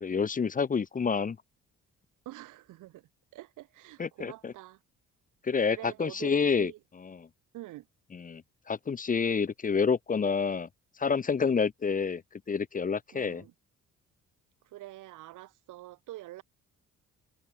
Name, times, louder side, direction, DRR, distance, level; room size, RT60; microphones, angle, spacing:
voice 1, 0.0-1.4 4.0-4.5 5.4-6.7 7.0-7.3 8.1-8.4 8.7-10.7 11.0-12.2 12.5-13.4, left 5 dB, 25° left, 0.7 m, -28 dB
voice 2, 2.3-4.8 5.7-6.8 7.5-7.9 13.1-13.5 14.6-16.4, right 16 dB, 90° right, 2.0 m, -46 dB
cardioid pair, 90°, 30 cm